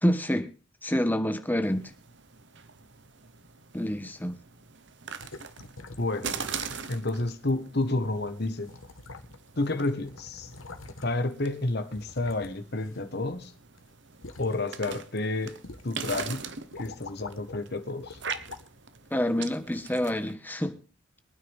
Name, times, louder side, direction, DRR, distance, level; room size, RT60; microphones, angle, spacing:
voice 1, 0.0-0.5 0.8-1.8 3.7-4.3 19.1-20.8, equal, 10° left, 1.3 m, -27 dB
sound 1, 1.6-20.3, right 6 dB, 60° right, 1.2 m, -42 dB
sound 2, 5.2-6.2 6.5-6.9 7.2-7.3 8.2-8.3 8.6-9.6 9.8-11.3 11.9-13.5 13.8-14.5 15.0-15.2 15.6-16.2 16.5-17.6 18.0-18.7 19.4-19.5, left 3 dB, 85° left, 1.5 m, -45 dB
voice 2, 6.0-6.4 6.9-8.7 9.6-10.5 11.0-13.5 14.4-16.5 16.8-18.2, left 2 dB, 55° left, 1.5 m, -30 dB
24.0 x 9.5 x 3.6 m
head